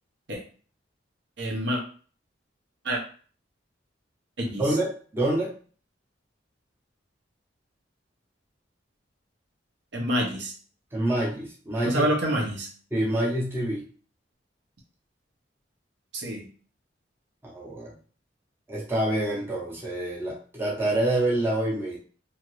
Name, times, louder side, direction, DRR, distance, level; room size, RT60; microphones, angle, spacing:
voice 1, 1.4-1.8 2.8-3.0 4.4-4.7 9.9-10.5 11.8-12.7 16.1-16.5, right 1 dB, 65° right, 1 dB, 0.8 m, -27 dB
voice 2, 4.6-5.5 10.9-12.0 12.9-13.8 17.4-17.9 18.7-22.0, right 1 dB, 10° right, -4 dB, 0.7 m, -27 dB
2.7 x 2.5 x 3.0 m, 0.42 s
head